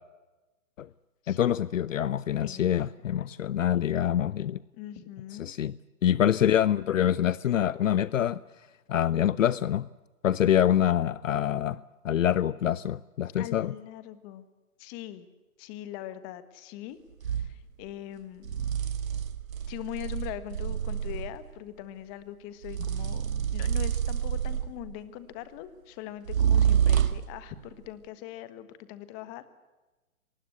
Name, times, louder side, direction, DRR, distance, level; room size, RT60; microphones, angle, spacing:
voice 1, 1.3-4.6 5.4-5.7 6.0-8.4 8.9-9.9 10.2-11.8 12.0-13.7, left 10 dB, 65° left, 20 dB, 0.8 m, -25 dB
voice 2, 2.4-3.2 3.5-3.6 4.7-5.5 13.4-14.5 14.8-15.3 15.6-17.0 17.3-18.6 19.7-23.2 23.5-29.5, left 13 dB, 20° left, 13 dB, 1.5 m, -41 dB
sound 1, 17.2-17.5 18.4-21.4 22.6-24.9 26.3-27.4, right 9 dB, 70° right, 1.9 m, -27 dB
25.5 x 20.0 x 8.0 m, 1.1 s
hypercardioid pair, 150°, 42 cm